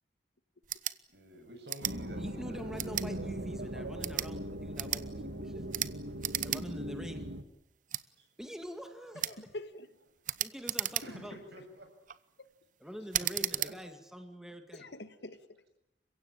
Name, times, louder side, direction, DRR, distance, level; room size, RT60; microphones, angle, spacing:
sound 1, 0.6-1.0 1.7-2.0 2.8-3.1 3.9-4.3 4.7-5.0 5.7-5.9 6.2-6.6 7.0-7.1 7.9-8.0 9.2-9.4 10.2-11.3 11.9-12.2 13.1-13.7, right 12 dB, 45° right, 0.9 m, -34 dB
voice 1, 1.1-4.3 8.2-8.3 11.0-11.9 13.4-13.7, equal, 70° right, 8.0 m, -49 dB
sound 2, 1.8-7.4, right 1 dB, 90° right, 1.9 m, -40 dB
voice 2, 2.1-5.7 6.4-7.3 8.4-9.6 10.4-11.4 12.8-14.9, equal, 5° right, 2.2 m, -45 dB
voice 3, 9.2-9.9 11.0-11.1 14.7-15.8, left 1 dB, 75° left, 2.0 m, -45 dB
30.0 x 16.5 x 8.9 m
head